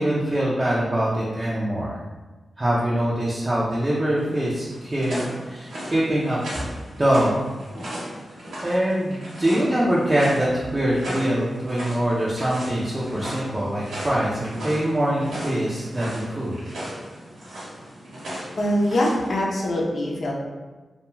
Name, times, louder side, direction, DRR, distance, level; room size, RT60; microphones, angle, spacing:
voice 1, 0.0-2.0 2.6-5.2 5.5-6.4 7.0-7.4 8.6-16.6, right 1 dB, 30° right, -6 dB, 0.6 m, -23 dB
Sticky Footsteps + door opening with beeping sound., 4.2-19.3, equal, 90° right, 0.9 m, -36 dB
voice 2, 18.6-20.3, left 1 dB, 65° left, -3 dB, 0.6 m, -23 dB
2.4 x 2.3 x 3.0 m, 1.3 s
cardioid pair, 50°, 0 cm